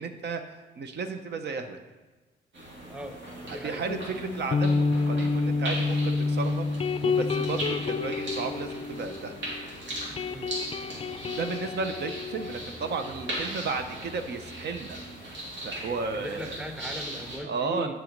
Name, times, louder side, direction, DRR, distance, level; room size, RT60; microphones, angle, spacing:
voice 1, 0.0-1.8 3.5-9.3 11.3-15.0 15.6-16.5 17.4-17.9, right 4 dB, 60° right, 7 dB, 0.7 m, -34 dB
sound 1, 2.5-17.4, right 1 dB, 75° right, 3.1 m, -39 dB
voice 2, 2.9-3.8 10.3-10.5 16.1-17.9, equal, 5° right, 5 dB, 0.8 m, -38 dB
sound 2, 3.9-9.7 9.9-13.4, left 4 dB, 30° left, 0.4 m, -29 dB
7.6 x 6.1 x 5.2 m, 1.2 s
cardioid pair, 90°, 20 cm